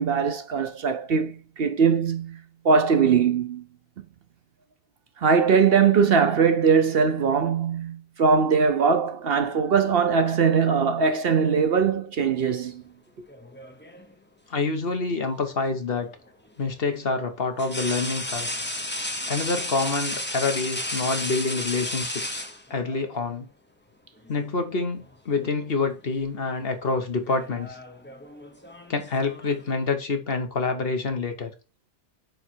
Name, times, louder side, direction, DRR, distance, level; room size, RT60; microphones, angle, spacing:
voice 1, 0.0-3.6 5.2-12.8, right 6 dB, 60° right, 1.0 m, -21 dB
sound 1, 13.3-14.1 15.9-16.1 17.6-23.1 24.2-24.5 24.8-25.6 25.9-26.2 27.1-29.7, left 1 dB, 10° left, 0.8 m, -33 dB
voice 2, 14.5-16.1 16.6-18.5 19.3-22.4 22.7-23.5 24.3-27.8 28.9-31.5, left 3 dB, 55° left, 1.3 m, -27 dB
9.1 x 3.3 x 4.5 m
omnidirectional pair, 1.2 m